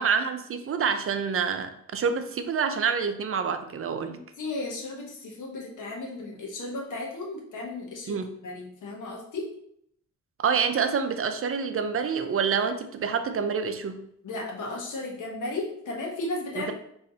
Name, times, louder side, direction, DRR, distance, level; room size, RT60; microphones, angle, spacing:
voice 1, 0.0-4.2 8.1-8.4 10.4-14.0 16.6-16.7, right 6 dB, 50° right, 8 dB, 0.5 m, -27 dB
voice 2, 4.1-9.5 14.2-16.7, left 2 dB, 85° left, -1 dB, 1.1 m, -35 dB
5.3 x 3.1 x 2.8 m, 0.72 s
wide cardioid pair, 105°, 30 cm